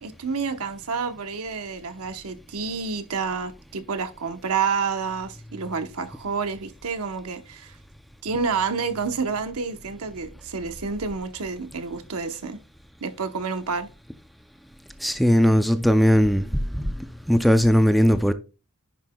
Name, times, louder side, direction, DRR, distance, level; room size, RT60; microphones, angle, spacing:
voice 1, 0.0-7.8 8.2-12.6 13.0-13.9, right 5 dB, 85° right, 0.9 m, -29 dB
voice 2, 15.0-16.4 16.7-16.8 17.3-18.3, equal, ahead, 0.4 m, -18 dB
10.5 x 5.7 x 2.2 m
head